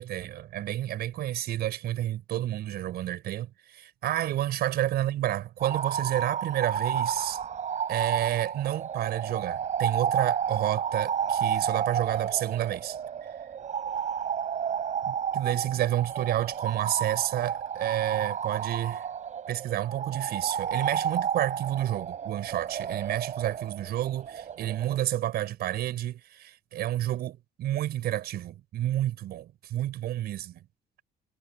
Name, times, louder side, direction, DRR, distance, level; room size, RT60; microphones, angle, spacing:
voice 1, 0.0-7.4 7.9-13.3 15.0-19.1 19.5-30.6, right 13 dB, 70° right, 6.0 m, -30 dB
sound 1, 5.6-25.0, right 8 dB, 45° right, 6.1 m, -31 dB
cardioid pair, 110°, 17 cm